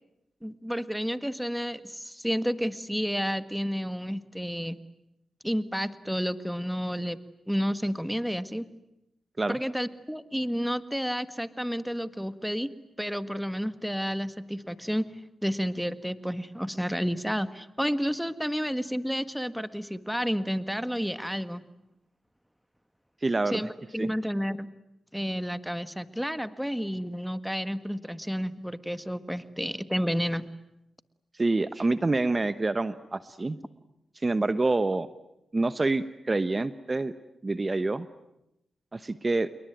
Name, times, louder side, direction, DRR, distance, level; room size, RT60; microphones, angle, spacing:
voice 1, 0.4-4.8 5.4-7.2 7.5-8.6 9.5-12.7 13.0-21.6 23.5-24.7 25.1-30.5, equal, ahead, 13 dB, 1.6 m, -31 dB
voice 2, 23.2-23.6 24.0-24.1 31.4-33.6 34.2-35.1 35.5-37.1 37.4-38.1 38.9-39.5, right 2 dB, 35° right, 13 dB, 1.1 m, -27 dB
28.0 x 22.5 x 9.3 m, 0.87 s
supercardioid pair, 45°, 0 cm